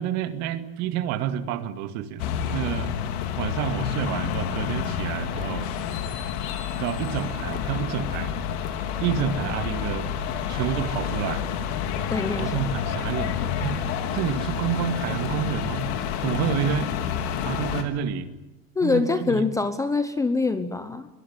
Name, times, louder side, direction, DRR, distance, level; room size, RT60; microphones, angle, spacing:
voice 1, 0.0-2.9 3.4-5.7 6.7-8.3 9.0-10.1 10.5-11.4 12.4-13.8 14.1-15.9 16.2-16.9 17.4-18.3 18.8-19.4, right 9 dB, 40° right, 9 dB, 2.2 m, -29 dB
sound 1, 2.2-17.8, left 8 dB, 50° left, 3.8 m, -29 dB
voice 2, 12.1-12.5 18.8-21.1, left 3 dB, 10° left, 10 dB, 0.9 m, -24 dB
23.5 x 21.0 x 9.8 m, 0.99 s
supercardioid pair, 160°, 40 cm